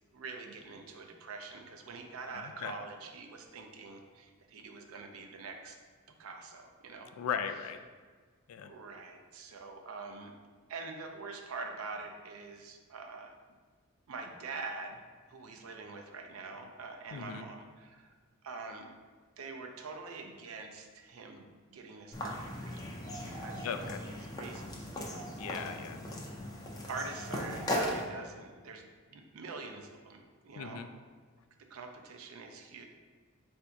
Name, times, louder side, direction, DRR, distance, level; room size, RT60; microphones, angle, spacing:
voice 1, 0.1-5.8 6.2-7.1 8.6-10.3 10.7-13.3 14.1-15.0 15.3-18.2 18.4-18.9 19.4-21.4 21.7-22.8 23.3-25.3 26.9-30.8 31.7-32.9, right 4 dB, 80° right, 4 dB, 0.5 m, -45 dB
voice 2, 2.4-2.7 7.2-7.8 8.5-8.7 17.1-17.4 23.6-24.0 25.4-26.0 30.5-30.9, left 7 dB, 85° left, 8 dB, 0.3 m, -37 dB
sound 1, 22.1-28.0, left 1 dB, 20° left, 0.5 m, -38 dB
3.5 x 2.6 x 4.4 m, 1.5 s
head